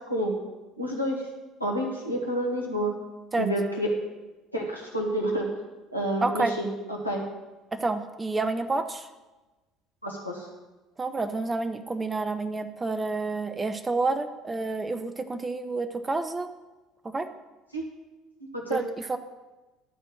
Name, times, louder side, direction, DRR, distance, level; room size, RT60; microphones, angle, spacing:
voice 1, 0.8-1.2 1.6-2.9 3.4-3.9 4.5-5.5 5.9-7.2 10.0-10.5 17.7-17.8 18.5-18.8, right 1 dB, 90° left, -2 dB, 1.4 m, -29 dB
voice 2, 6.2-6.5 7.7-9.1 11.0-16.5 17.0-17.3 18.7-19.2, right 3 dB, 20° right, 10 dB, 0.7 m, -29 dB
12.0 x 4.5 x 7.7 m, 1.1 s
figure-of-eight pair, 60°, 0 cm